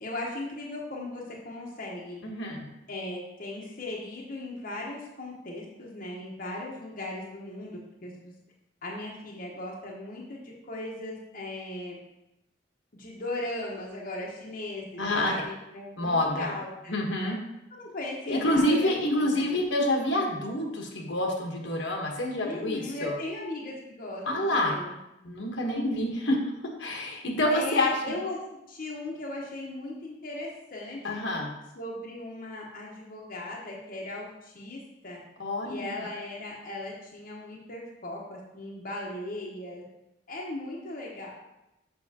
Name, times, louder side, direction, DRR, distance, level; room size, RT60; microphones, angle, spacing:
voice 1, 0.0-2.2 2.9-8.4 8.8-12.0 13.0-17.0 17.7-19.5 22.4-25.0 27.5-28.4 28.7-31.2 31.7-35.2 35.6-39.8 40.3-41.3, left 1 dB, 50° left, -3 dB, 1.0 m, -38 dB
voice 2, 2.2-2.7 15.0-15.3 16.0-16.5 16.9-17.4 18.3-23.1 24.3-24.8 25.2-26.4 26.8-28.1 31.0-31.5 35.4-35.9, left 1 dB, 70° left, 0 dB, 1.2 m, -27 dB
7.2 x 5.7 x 2.8 m, 0.90 s
head